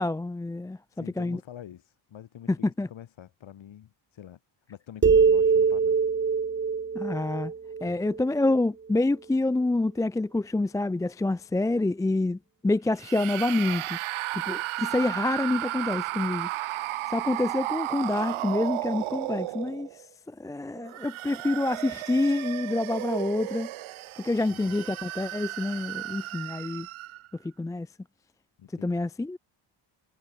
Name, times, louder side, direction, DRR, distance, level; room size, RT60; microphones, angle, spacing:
voice 1, 0.0-1.4 2.5-2.9 6.9-7.5 7.8-14.0 14.3-16.5 17.1-23.7 24.2-26.9 27.4-27.9 28.8-29.4, left 2 dB, 10° left, 0.4 m, -27 dB
voice 2, 0.9-4.4 4.7-6.0 7.9-8.0 24.5-24.8 28.6-29.1, left 10 dB, 70° left, 7.4 m, -46 dB
sound 1, 5.0-8.5, right 5 dB, 25° right, 0.9 m, -23 dB
sound 2, 13.0-20.1 20.8-27.3, right 17 dB, 75° right, 1.2 m, -34 dB
supercardioid pair, 65°, 48 cm